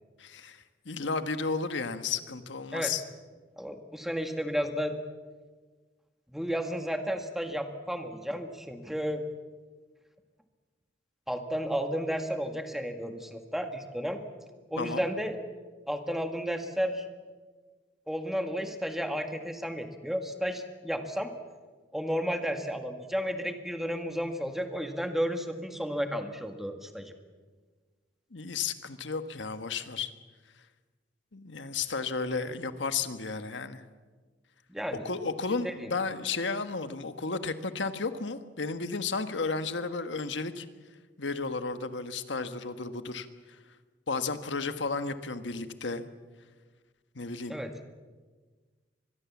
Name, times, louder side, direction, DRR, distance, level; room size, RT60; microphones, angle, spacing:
voice 1, 0.2-3.0 14.8-15.0 28.3-30.1 31.3-33.8 35.0-40.6 41.2-43.6 44.1-46.0 47.1-47.6, left 4 dB, 75° left, 10 dB, 1.4 m, -33 dB
voice 2, 3.6-5.0 6.3-9.2 11.3-14.2 14.7-15.4 15.9-17.1 18.1-21.3 21.9-27.1 34.7-35.0 35.6-35.7 47.5-47.7, equal, ahead, 6 dB, 1.8 m, -32 dB
24.5 x 21.5 x 7.3 m, 1.4 s
head